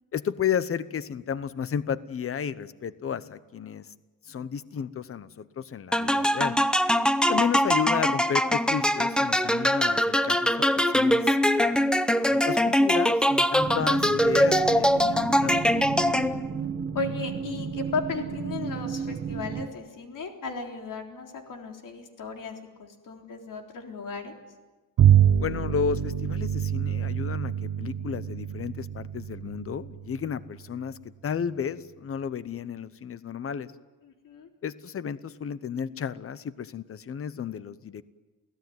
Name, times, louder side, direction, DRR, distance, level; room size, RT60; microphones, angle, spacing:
voice 1, 0.1-3.9 4.3-6.6 7.3-15.6 25.4-33.7 34.6-38.0, left 7 dB, 40° left, 15 dB, 0.9 m, -33 dB
sound 1, 5.9-16.6, equal, 5° left, 0.7 m, -23 dB
sound 2, 13.6-19.7, right 7 dB, 45° right, 1.4 m, -33 dB
voice 2, 16.9-24.3 34.0-34.5, left 4 dB, 70° left, 3 dB, 3.8 m, -36 dB
Bowed string instrument, 25.0-30.6, right 10 dB, 75° right, 1.2 m, -25 dB
28.5 x 17.5 x 9.5 m, 1.2 s
wide cardioid pair, 165°, 33 cm